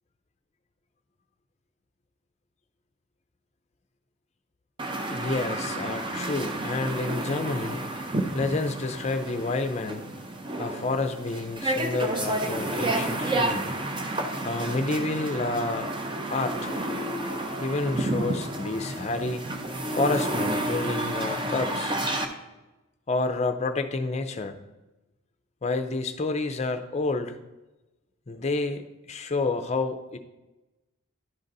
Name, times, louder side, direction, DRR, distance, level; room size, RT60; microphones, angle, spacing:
sound 1, 4.8-22.3, right 1 dB, 20° right, 0.5 m, -30 dB
voice 1, 5.1-8.1 8.3-10.1 10.6-13.7 14.4-15.9 16.3-16.7 17.6-19.4 20.0-21.9 23.1-24.6 25.6-27.4 28.3-28.8 29.1-30.2, left 3 dB, 30° left, 8 dB, 0.5 m, -29 dB
11.0 x 3.9 x 4.0 m, 1.0 s
head